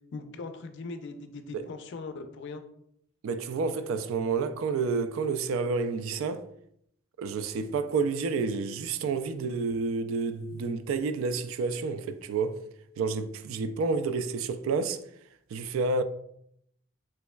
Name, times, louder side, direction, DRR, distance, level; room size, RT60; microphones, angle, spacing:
voice 1, 0.1-2.6, left 3 dB, 65° left, 0.4 m, -40 dB
voice 2, 3.2-6.4 7.2-12.6 13.0-15.0 15.5-16.0, right 4 dB, 85° right, 0.3 m, -29 dB
3.4 x 3.0 x 2.2 m
head